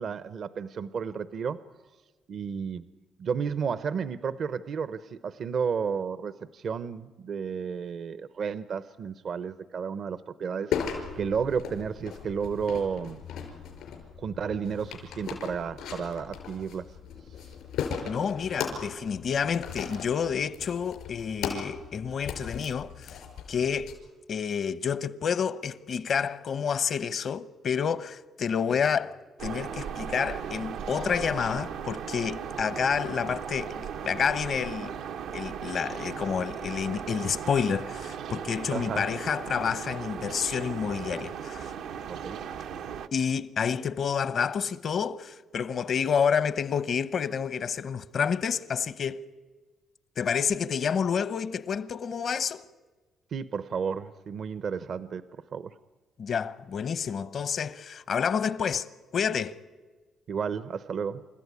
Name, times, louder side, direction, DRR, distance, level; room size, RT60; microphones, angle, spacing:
voice 1, 0.0-1.6 2.3-2.9 3.2-13.2 14.2-17.0 17.4-17.5 38.7-39.1 42.1-42.4 53.3-55.8 60.3-61.3, right 6 dB, 60° right, 0.7 m, -32 dB
sound 1, 10.7-23.9, left 7 dB, 85° left, 5.6 m, -37 dB
voice 2, 18.1-23.2 23.5-23.9 24.3-35.0 35.3-41.7 43.1-49.2 50.2-52.6 56.2-59.6, left 7 dB, 55° left, 0.9 m, -29 dB
sound 2, 29.4-43.1, right 7 dB, 85° right, 0.9 m, -37 dB
28.5 x 14.0 x 9.7 m
cardioid pair, 90°, 0 cm